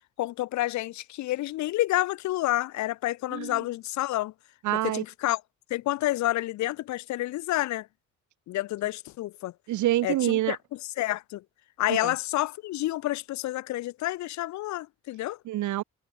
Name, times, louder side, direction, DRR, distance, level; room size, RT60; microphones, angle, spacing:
voice 1, 0.2-4.3 4.7-5.4 5.7-7.9 8.5-9.5 10.0-10.6 11.0-11.4 11.8-15.4, left 16 dB, 70° left, 0.6 m, -29 dB
voice 2, 4.6-5.0 9.7-10.6 11.9-12.1 15.5-15.8, right 15 dB, 75° right, 1.0 m, -26 dB
cardioid pair, 90°, 30 cm